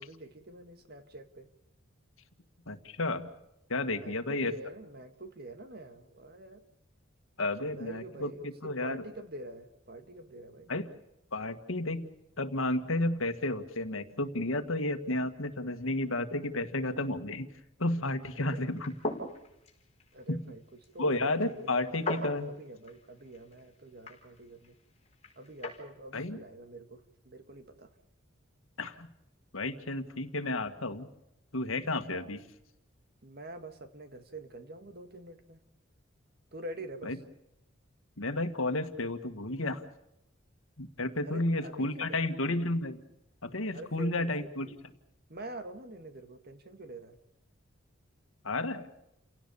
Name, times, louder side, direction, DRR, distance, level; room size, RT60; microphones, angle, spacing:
voice 1, 0.0-1.5 3.9-6.6 7.6-10.7 18.3-18.7 20.1-20.6 20.9-24.8 25.4-28.0 32.1-32.3 33.2-35.6 36.5-37.2 41.2-42.3 43.7-44.8 45.3-47.2, right 2 dB, 50° right, 8 dB, 2.0 m, -46 dB
voice 2, 2.7-3.3 3.7-4.5 7.4-8.3 8.6-9.0 10.7-10.9 11.3-12.1 12.4-17.5 17.8-18.9 20.3-20.4 21.0-22.5 26.1-26.4 28.8-29.1 29.5-31.1 31.5-32.4 37.1-37.2 38.2-39.9 40.8-43.0 43.4-44.7 48.4-48.9, left 2 dB, 80° left, 9 dB, 1.8 m, -32 dB
sound 1, 18.7-25.8, left 2 dB, 30° left, 5.0 m, -42 dB
29.5 x 17.5 x 7.1 m, 0.85 s
head